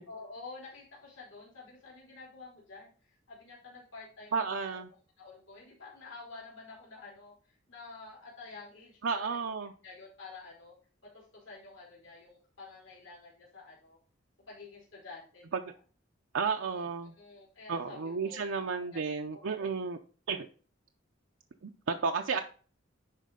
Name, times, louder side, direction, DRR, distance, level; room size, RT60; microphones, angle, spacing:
voice 1, 0.1-4.8 5.2-9.4 9.8-10.7 11.0-14.0 14.5-15.7 16.7-16.8 17.1-19.7 22.1-22.4, left 3 dB, 70° left, -5 dB, 3.3 m, -50 dB
voice 2, 4.3-4.9 9.0-9.7 15.5-15.6 16.3-17.1 17.7-20.0 20.3-20.5 21.6-22.4, right 5 dB, 80° right, 3 dB, 0.6 m, -32 dB
11.0 x 4.3 x 3.7 m, 0.40 s
head